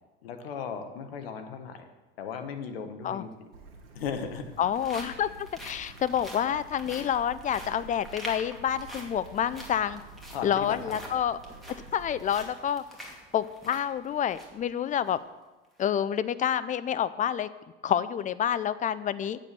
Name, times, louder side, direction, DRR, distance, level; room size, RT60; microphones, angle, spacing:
voice 1, 0.2-1.8 2.2-3.5 3.9-4.5 10.3-11.0, left 6 dB, 70° left, 7 dB, 1.2 m, -37 dB
sound 1, 3.0-3.1 4.1-14.6 15.0-15.1 15.6-15.9, equal, ahead, 2.5 m, -46 dB
Bird / Stream, 3.5-12.5, right 4 dB, 75° right, 1.7 m, -49 dB
voice 2, 4.6-10.0 10.4-11.4 11.9-12.8 13.3-15.2 15.8-17.5 17.8-19.4, left 9 dB, 25° left, 15 dB, 0.5 m, -28 dB
7.8 x 7.2 x 6.9 m, 1.2 s
hypercardioid pair, 70°, 30 cm